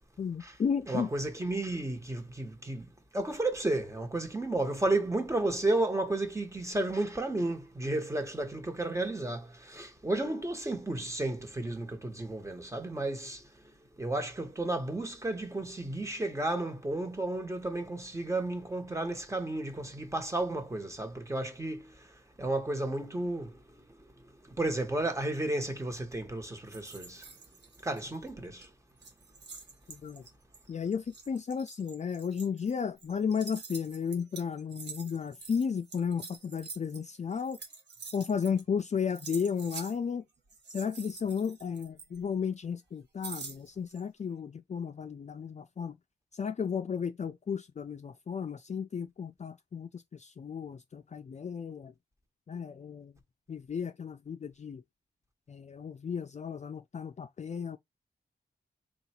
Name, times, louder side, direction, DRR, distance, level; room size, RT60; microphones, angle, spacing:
voice 1, 0.2-1.1 27.9-28.0 29.9-30.2 30.7-37.6 38.1-40.2 40.7-46.0 46.3-51.9 52.5-53.1 53.5-54.8 55.5-57.8, left 6 dB, 40° left, 0.4 m, -34 dB
voice 2, 0.9-2.9 3.1-13.5 14.0-22.1 22.4-23.8 24.5-27.2 27.8-28.7, right 2 dB, 15° right, 1.0 m, -32 dB
sound 1, 26.7-28.3 28.6-28.7 29.0-38.8 39.1-40.0 40.5-42.4 43.2-44.0, right 5 dB, 75° right, 1.0 m, -47 dB
3.8 x 2.3 x 4.2 m
wide cardioid pair, 120°, 18 cm